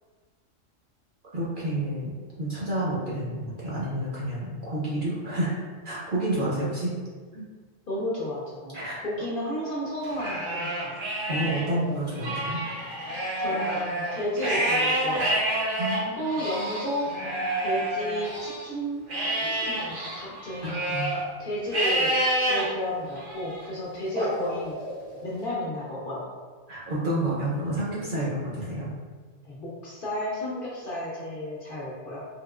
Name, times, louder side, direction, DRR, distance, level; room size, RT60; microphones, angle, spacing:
voice 1, 1.3-6.9 7.3-7.5 8.7-9.0 11.3-12.6 15.8-16.3 20.6-21.1 26.7-28.9, right 1 dB, 50° right, -6 dB, 0.7 m, -29 dB
voice 2, 7.9-8.8 9.0-11.0 11.6-12.0 13.4-15.4 16.2-17.1 17.6-19.0 19.5-20.8 21.4-22.2 22.4-24.8 25.2-26.2 29.4-32.2, left 1 dB, 55° left, -6 dB, 0.7 m, -32 dB
Livestock farm animals working animals, 10.0-11.6 12.1-18.6 19.1-21.2 21.7-22.6 23.2-23.6 24.1-25.2, right 1 dB, 80° right, 1.4 m, -28 dB
3.5 x 2.8 x 2.3 m, 1.5 s
omnidirectional pair, 1.3 m